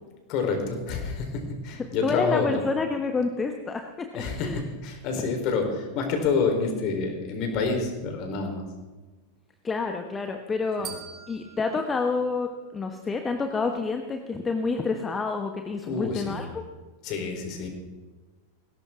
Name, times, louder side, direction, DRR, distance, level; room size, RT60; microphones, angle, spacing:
voice 1, 0.3-2.6 4.1-8.6 10.8-10.9 15.8-16.4 17.0-17.7, left 4 dB, 40° left, 4 dB, 4.0 m, -28 dB
voice 2, 1.8-4.6 5.1-5.3 9.6-11.0 11.3-16.7, left 4 dB, 15° left, 5 dB, 1.2 m, -29 dB
sound 1, 10.8-13.1, right 7 dB, 25° right, 2.3 m, -45 dB
20.5 x 17.5 x 3.7 m, 1.2 s
figure-of-eight pair, 90°, 0 cm